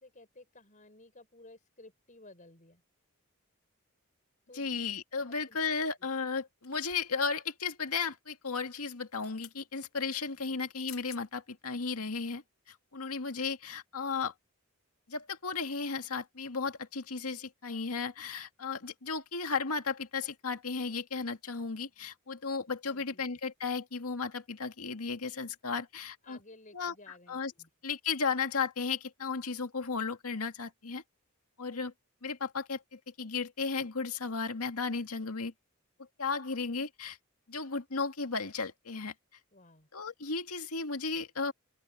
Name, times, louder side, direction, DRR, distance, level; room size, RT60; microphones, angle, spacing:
voice 1, 0.0-2.8 4.5-4.7 5.2-6.1 10.4-10.6 22.9-23.2 26.2-27.7 39.5-39.9, left 2 dB, 35° left, 5.5 m, -56 dB
voice 2, 4.5-14.3 15.1-26.4 26.7-26.9 27.3-27.5 27.8-31.0 31.6-31.9 32.2-35.5 36.2-37.2 37.5-39.1 39.9-41.5, left 4 dB, 80° left, 2.0 m, -35 dB
sound 1, 6.6-7.2 8.9-9.6 10.6-10.7 10.9-11.2 11.8-11.9, left 14 dB, 65° left, 4.2 m, -52 dB
open air
head